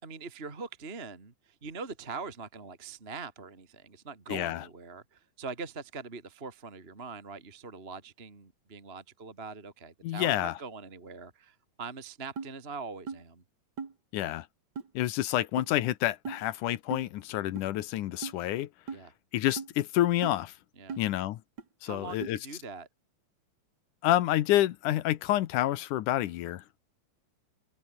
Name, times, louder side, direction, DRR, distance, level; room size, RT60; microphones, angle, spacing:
voice 1, 0.0-13.4 18.9-19.1 20.8-21.0 21.8-22.9, right 4 dB, 20° right, 2.6 m, -42 dB
voice 2, 4.3-4.6 10.0-10.5 14.1-14.5 15.0-18.7 19.3-20.5 21.0-21.4 21.8-22.4 24.0-26.6, left 14 dB, 80° left, 2.5 m, -28 dB
sound 1, 12.4-12.5 13.1-13.2 13.8-13.9 14.8-14.9 15.6-15.7 16.2-16.4 16.9-17.1 17.6-17.7 18.2-18.4 18.9-19.0 19.6-19.7 20.2-20.4 20.9-21.0 21.6-21.7 22.2-22.3, right 5 dB, 35° right, 2.7 m, -38 dB
omnidirectional pair, 3.6 m